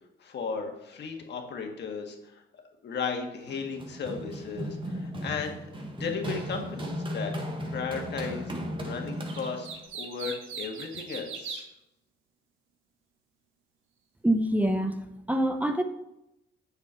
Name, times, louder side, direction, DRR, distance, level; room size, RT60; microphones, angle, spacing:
voice 1, 0.2-7.3 7.7-11.7, left 5 dB, 60° left, 3 dB, 1.8 m, -36 dB
Run, 3.5-9.9, equal, 25° right, 1.7 m, -36 dB
sound 1, 9.3-11.6, right 5 dB, 85° right, 1.5 m, -39 dB
voice 2, 14.2-15.0 15.3-15.8, right 1 dB, 10° right, 7 dB, 0.7 m, -25 dB
7.5 x 6.9 x 5.7 m, 0.87 s
cardioid pair, 90°, 20 cm